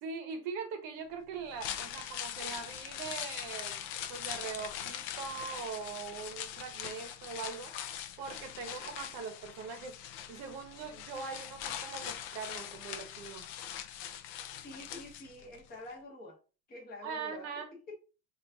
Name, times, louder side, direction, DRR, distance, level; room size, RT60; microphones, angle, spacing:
voice 1, 0.0-3.8 4.1-7.7 8.2-10.0 10.3-13.5 17.0-17.7, right 5 dB, 40° right, 0.9 m, -41 dB
sound 1, 1.4-15.6 15.9-16.0, left 10 dB, 45° left, 0.4 m, -42 dB
voice 2, 14.6-16.4 16.7-18.0, left 1 dB, 20° left, 1.0 m, -47 dB
3.9 x 2.6 x 3.4 m
supercardioid pair, 150°, 49 cm